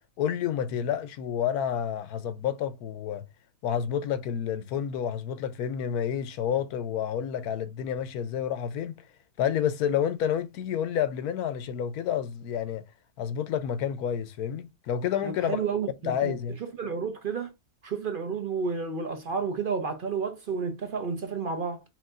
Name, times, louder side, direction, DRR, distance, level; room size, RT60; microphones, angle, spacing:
voice 1, 0.2-3.2 3.6-9.0 9.4-12.8 13.2-15.6 16.0-16.6, left 9 dB, 80° left, 1.1 m, -29 dB
voice 2, 15.2-16.3 16.8-17.5 17.8-21.8, right 5 dB, 50° right, 0.6 m, -31 dB
5.9 x 2.6 x 2.4 m
omnidirectional pair, 1.6 m